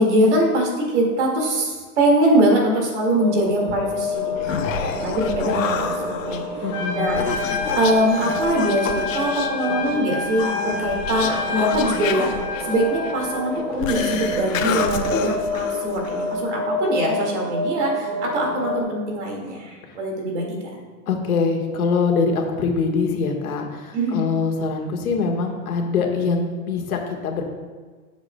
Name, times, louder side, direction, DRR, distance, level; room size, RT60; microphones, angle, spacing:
voice 1, 0.0-4.7 5.0-6.4 6.9-12.3 12.6-20.6 23.9-24.2, right 1 dB, 55° right, 0 dB, 2.1 m, -22 dB
sound 1, 3.2-18.8, left 1 dB, 30° right, 0.9 m, -29 dB
Human voice, 4.1-16.4, left 6 dB, 65° left, 0.9 m, -29 dB
voice 2, 6.6-7.1 21.1-27.4, left 4 dB, 90° left, 2 dB, 1.6 m, -23 dB
Trumpet, 6.7-13.4, left 3 dB, 25° left, 1.1 m, -29 dB
11.5 x 7.1 x 2.2 m, 1.4 s
supercardioid pair, 180°, 42 cm